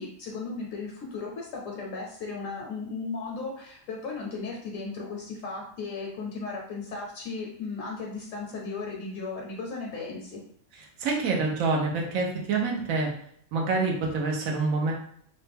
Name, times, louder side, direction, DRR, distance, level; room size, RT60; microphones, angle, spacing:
voice 1, 0.0-10.4, left 4 dB, 75° left, -1 dB, 0.9 m, -36 dB
voice 2, 11.0-13.1 13.5-14.9, right 3 dB, 85° right, 0 dB, 1.1 m, -26 dB
3.1 x 2.1 x 3.3 m, 0.65 s
omnidirectional pair, 1.4 m